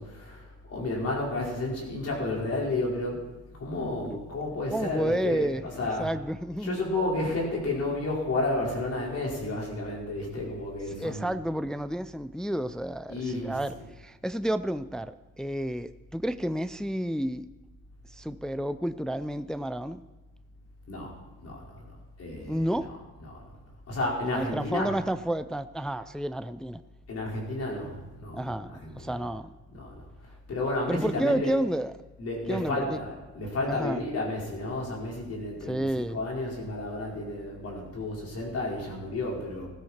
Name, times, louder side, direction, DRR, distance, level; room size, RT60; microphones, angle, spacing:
voice 1, 0.0-3.3 3.5-5.5 5.8-6.1 6.6-11.3 13.1-13.6 20.9-21.1 21.4-21.8 22.2-22.7 23.3-23.4 23.9-24.9 27.1-28.4 28.7-29.2 29.7-30.0 30.5-31.5 32.2-39.7, left 2 dB, 55° left, -3 dB, 5.0 m, -31 dB
voice 2, 4.7-5.7 6.0-6.8 10.9-17.5 18.1-20.0 22.5-22.9 24.2-26.8 28.3-29.5 30.9-32.0 32.5-33.0 33.7-34.0 35.7-36.2, right 1 dB, ahead, 12 dB, 0.4 m, -30 dB
15.5 x 13.5 x 4.4 m, 1.2 s
cardioid pair, 90°, 30 cm